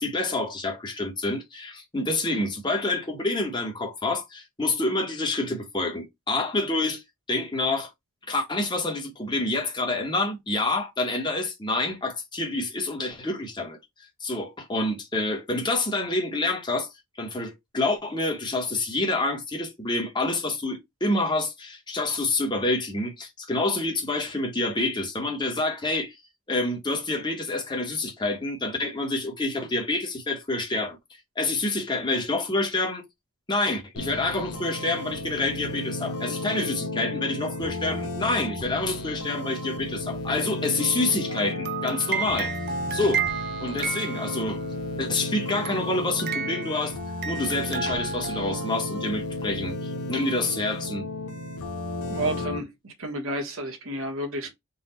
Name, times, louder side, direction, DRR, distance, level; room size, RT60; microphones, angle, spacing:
voice 1, 0.0-7.0 7.3-7.9 8.3-13.8 14.2-16.9 17.2-26.1 26.5-31.0 31.4-33.0 33.5-42.5 42.9-43.2 43.6-44.6 45.0-47.0 47.3-51.0, left 2 dB, 20° left, 1.1 m, -27 dB
sound 1, 34.0-52.6, left 2 dB, 90° left, 1.0 m, -33 dB
sound 2, 41.3-44.7 45.6-46.9 47.2-48.7, right 6 dB, 45° right, 0.5 m, -32 dB
voice 2, 52.1-54.5, right 1 dB, 65° right, 1.2 m, -31 dB
4.0 x 2.4 x 4.2 m
head